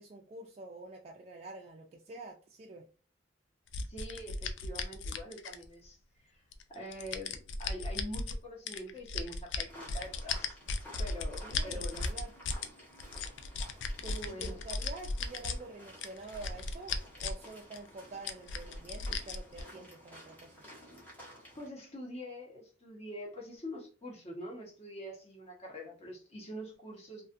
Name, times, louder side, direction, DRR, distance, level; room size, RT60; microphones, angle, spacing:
voice 1, 0.0-2.9 11.3-12.3 14.3-20.5, right 2 dB, 35° right, 0.3 m, -47 dB
sound 1, 3.7-5.9 6.5-8.4 8.7-12.7 13.0-15.6 16.0-17.5 17.7-17.8 18.3-19.6, left 4 dB, 75° left, 0.4 m, -36 dB
voice 2, 3.9-6.0 6.2-6.3 6.7-10.6 11.0-12.0 13.1-13.2 14.0-14.6 21.5-27.3, equal, 35° left, 0.9 m, -44 dB
sound 2, 9.7-21.7, equal, 10° left, 1.0 m, -53 dB
2.5 x 2.4 x 2.5 m
head